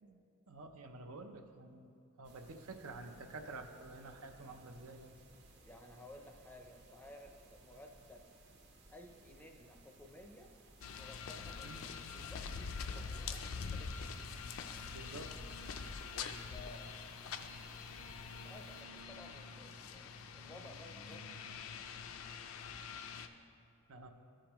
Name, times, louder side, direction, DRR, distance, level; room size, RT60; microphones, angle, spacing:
voice 1, 0.5-1.9 2.2-5.1 11.6-11.8 14.9-15.5 23.9-24.1, right 2 dB, 75° right, 5 dB, 0.6 m, -50 dB
sound 1, 2.2-18.8, right 2 dB, 50° right, 0.9 m, -62 dB
voice 2, 5.6-8.2 8.9-10.5 11.0-14.2 16.5-17.6 18.3-21.2, left 1 dB, 10° left, 2 dB, 0.5 m, -56 dB
sound 2, 10.8-23.3, left 5 dB, 65° left, 0.4 m, -45 dB
13.5 x 5.1 x 3.0 m, 2.6 s
head